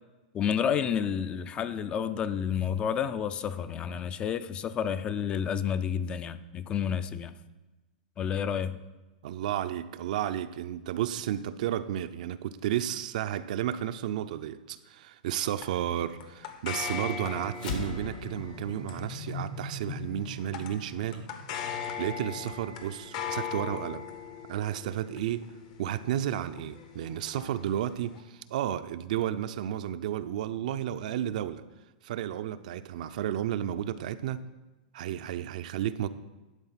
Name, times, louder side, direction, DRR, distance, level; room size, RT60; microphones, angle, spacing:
voice 1, 0.3-7.3 8.2-8.8, left 8 dB, 20° left, 0.3 m, -30 dB
voice 2, 9.2-21.3 21.6-24.0 24.5-25.5 25.8-31.6 32.0-34.5 34.9-36.1, right 11 dB, 60° right, 0.4 m, -32 dB
sound 1, 15.6-28.2, left 7 dB, 50° left, 0.8 m, -40 dB
sound 2, 17.5-22.2, left 3 dB, 65° left, 1.4 m, -39 dB
11.5 x 4.2 x 5.7 m
hypercardioid pair, 145°, 5 cm